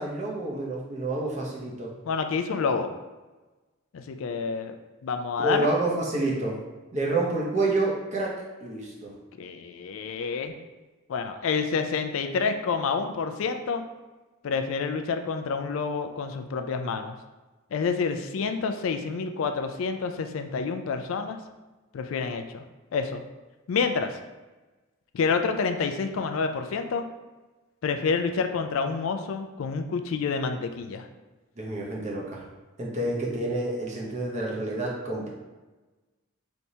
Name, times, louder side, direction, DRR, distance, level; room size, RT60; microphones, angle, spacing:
voice 1, 0.0-1.9 5.4-6.6 6.9-9.1 31.6-32.5 32.8-35.3, right 2 dB, 35° right, -3 dB, 0.8 m, -28 dB
voice 2, 2.0-2.9 3.9-4.7 5.0-5.7 9.4-10.5 11.1-13.8 14.4-17.2 17.7-21.4 21.9-22.6 22.9-23.2 23.7-24.1 25.1-27.0 27.8-31.1, left 5 dB, 75° left, 7 dB, 0.3 m, -28 dB
4.1 x 3.4 x 2.7 m, 1.2 s
head